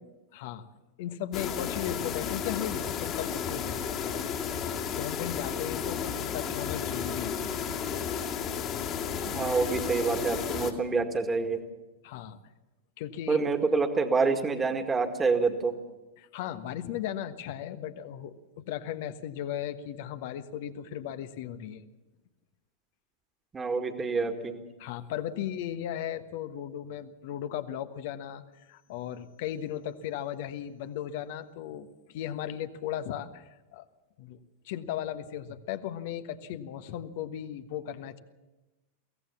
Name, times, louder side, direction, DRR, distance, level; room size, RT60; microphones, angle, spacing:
voice 1, 0.3-0.6 1.0-7.4 12.0-12.4 13.0-13.5 16.2-21.8 24.8-33.9 34.2-34.4 34.6-38.2, left 10 dB, 50° left, 10 dB, 1.3 m, -36 dB
sound 1, 1.3-10.7, left 7 dB, 35° left, 2.3 m, -33 dB
voice 2, 9.2-11.6 13.3-15.8 23.5-24.6, right 4 dB, 15° right, 7 dB, 2.0 m, -27 dB
23.0 x 17.0 x 7.2 m, 1.1 s
figure-of-eight pair, 90°, 0 cm